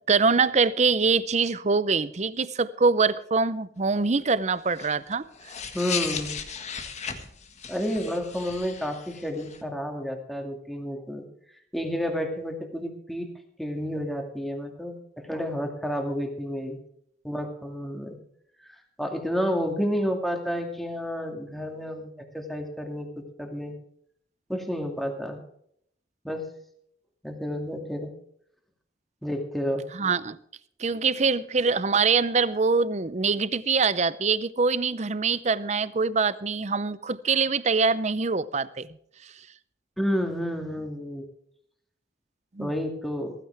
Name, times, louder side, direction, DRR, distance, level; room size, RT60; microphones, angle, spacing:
voice 1, 0.1-5.3 29.9-30.4 30.8-38.9 42.6-42.7, right 4 dB, 40° right, 0.6 m, -24 dB
sound 1, 4.6-9.6, left 6 dB, 40° left, 1.6 m, -36 dB
voice 2, 5.7-6.4 7.7-11.3 11.7-13.3 13.6-16.8 17.2-18.2 18.6-23.7 24.5-25.4 26.2-26.4 27.2-28.1 29.2-29.9 40.0-41.3 42.6-43.3, equal, ahead, 2.2 m, -30 dB
15.5 x 15.5 x 3.4 m
head